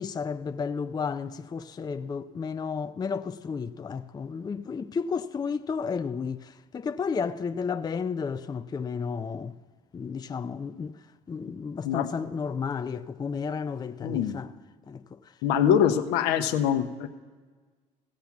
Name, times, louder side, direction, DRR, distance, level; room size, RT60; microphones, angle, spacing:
voice 1, 0.0-9.6 9.9-11.0 11.3-14.5 14.9-15.2, left 5 dB, 25° left, 0.5 m, -32 dB
voice 2, 14.0-14.4 15.4-17.1, left 9 dB, 70° left, 0.9 m, -24 dB
16.0 x 5.7 x 7.4 m
hypercardioid pair, 70°, 17 cm